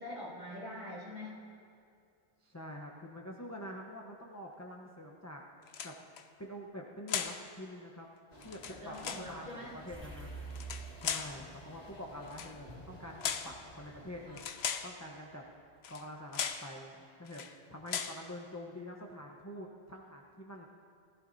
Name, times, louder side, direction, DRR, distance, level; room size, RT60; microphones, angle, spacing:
voice 1, 0.0-1.4 8.7-9.7, left 1 dB, 35° right, -7 dB, 3.2 m, -44 dB
voice 2, 2.4-5.4 5.8-8.1 8.4-10.3 11.0-14.4 14.8-15.4 15.9-17.4 17.7-20.7, equal, 15° left, -2 dB, 0.8 m, -46 dB
sound 1, 5.7-6.2 7.1-7.4 8.4-9.3 10.5-11.4 12.3-12.5 13.2-13.6 14.4-14.9 15.8-16.1 16.3-16.7 17.3-17.5 17.9-18.2, left 7 dB, 65° left, 0.9 m, -37 dB
sound 2, 8.3-14.5, left 1 dB, 35° left, 1.4 m, -53 dB
sound 3, 9.9-14.4, right 4 dB, 10° right, 1.3 m, -49 dB
19.5 x 14.5 x 2.7 m, 2.4 s
omnidirectional pair, 1.2 m